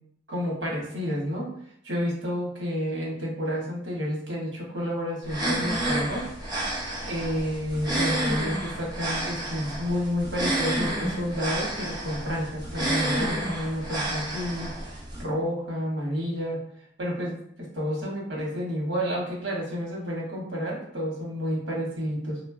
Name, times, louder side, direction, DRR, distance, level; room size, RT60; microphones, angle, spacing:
voice 1, 0.3-1.5 1.8-6.3 7.0-16.6 17.0-22.4, equal, 85° right, -3 dB, 1.0 m, -30 dB
sound 1, 5.2-15.2, right 1 dB, 25° right, 0.7 m, -30 dB
3.1 x 2.2 x 2.4 m, 0.67 s
head